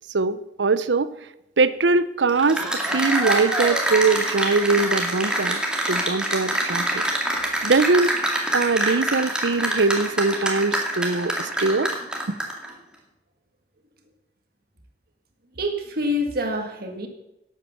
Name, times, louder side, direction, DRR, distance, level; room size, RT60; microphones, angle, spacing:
voice 1, 0.1-1.1 1.6-5.6 5.9-7.0 7.6-8.2 8.5-11.9, right 3 dB, 80° right, 15 dB, 0.7 m, -22 dB
Cheering / Applause, 2.3-12.7, right 1 dB, 5° right, 2.2 m, -25 dB
voice 2, 15.6-17.1, left 1 dB, 55° right, 5 dB, 1.9 m, -26 dB
11.5 x 8.3 x 7.1 m, 0.88 s
head